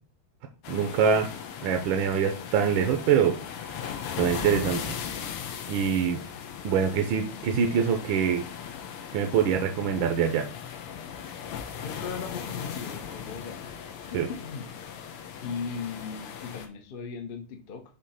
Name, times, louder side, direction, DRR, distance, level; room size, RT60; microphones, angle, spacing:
sound 1, 0.6-16.7, left 8 dB, 90° left, 1.8 m, -38 dB
voice 1, 0.7-1.3 1.6-3.6 4.2-5.0 5.7-6.2 6.6-8.5 9.1-10.5 14.1-14.3, right 7 dB, 75° right, 4 dB, 1.5 m, -24 dB
voice 2, 11.8-13.6 14.4-14.7 15.4-17.8, left 5 dB, 60° left, 6 dB, 0.5 m, -37 dB
6.6 x 2.9 x 5.6 m, 0.37 s
omnidirectional pair, 2.3 m